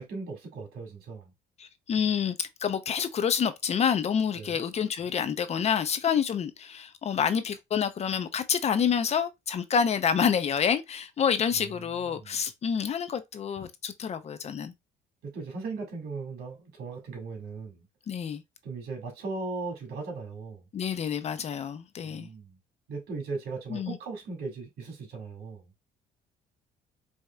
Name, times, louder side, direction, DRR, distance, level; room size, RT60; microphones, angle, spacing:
voice 1, 0.0-1.3 4.4-4.6 11.8-12.4 15.2-17.8 18.6-20.6 22.0-22.6 22.9-25.6, right 4 dB, 70° right, 1.9 m, -38 dB
voice 2, 1.6-14.7 18.1-18.4 20.7-22.3 23.7-24.0, left 7 dB, 40° left, 0.5 m, -28 dB
4.8 x 2.8 x 2.2 m
cardioid pair, 110°, 17 cm